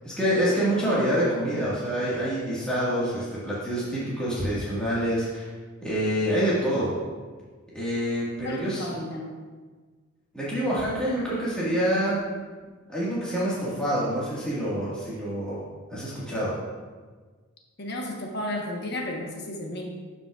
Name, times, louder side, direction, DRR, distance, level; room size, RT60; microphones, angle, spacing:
voice 1, 0.0-5.5 5.8-6.9 7.7-8.9 10.3-12.2 12.9-15.6 15.9-16.5, equal, 5° left, -10 dB, 1.6 m, -26 dB
voice 2, 8.4-9.4 17.8-19.8, left 1 dB, 50° left, 0 dB, 1.1 m, -33 dB
12.0 x 5.3 x 2.3 m, 1.4 s
head